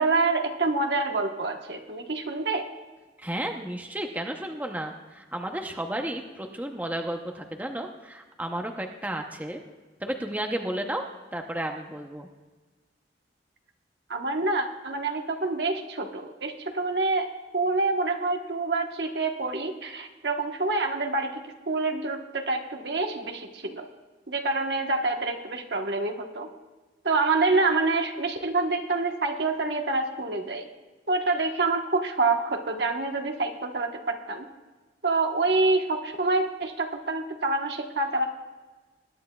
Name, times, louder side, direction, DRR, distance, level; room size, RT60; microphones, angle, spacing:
voice 1, 0.0-2.7 14.1-17.3 17.5-23.9 24.3-26.5 27.0-30.7 31.1-34.4 35.0-38.3, right 3 dB, 75° right, 3 dB, 1.2 m, -27 dB
voice 2, 3.2-9.6 10.0-11.0 11.3-12.3, right 1 dB, 10° right, 3 dB, 0.7 m, -33 dB
20.5 x 11.0 x 2.3 m, 1.3 s
head